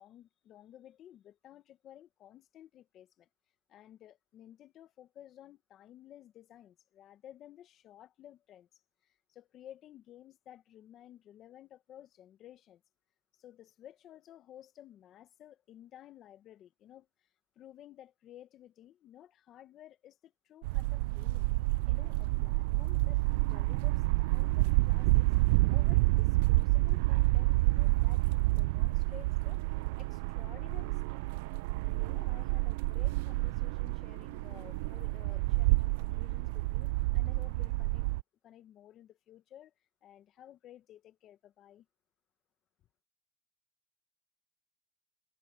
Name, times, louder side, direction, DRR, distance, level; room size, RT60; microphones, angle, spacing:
voice 1, 0.0-3.3 3.7-8.7 9.0-12.8 13.4-17.3 17.5-21.5 21.9-25.3 25.7-28.3 28.6-31.3 31.8-38.2 38.4-39.7 40.0-41.8, left 11 dB, 40° left, 1.6 m, -54 dB
sound 1, 20.6-38.2, right 22 dB, 75° right, 0.4 m, -29 dB
supercardioid pair, 130°, 0 cm